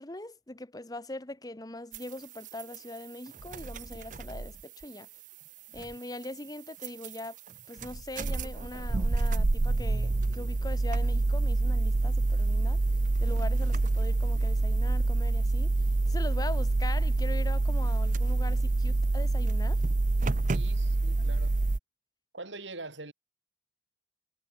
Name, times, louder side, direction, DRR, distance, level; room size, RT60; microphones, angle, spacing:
voice 1, 0.0-5.1 5.7-7.4 7.7-12.8 13.2-15.7 16.1-19.9 21.2-21.3, left 2 dB, 20° left, 1.2 m, -41 dB
sound 1, 1.9-2.0 2.5-2.8 3.4-4.6 5.8-5.9 6.8-7.2 7.5-7.6 7.8-21.8, right 2 dB, 45° right, 0.6 m, -27 dB
voice 2, 20.5-21.6 22.3-23.1, right 2 dB, 85° right, 4.8 m, -43 dB
head